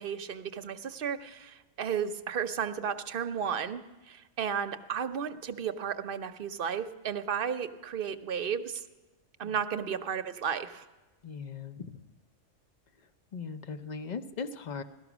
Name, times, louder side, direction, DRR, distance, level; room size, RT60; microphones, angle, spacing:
voice 1, 0.0-8.8 9.4-10.9, right 7 dB, 55° right, 9 dB, 0.8 m, -33 dB
voice 2, 11.2-12.2 13.0-14.8, left 5 dB, 45° left, 10 dB, 0.6 m, -39 dB
17.0 x 13.0 x 6.1 m, 1.1 s
omnidirectional pair, 1.3 m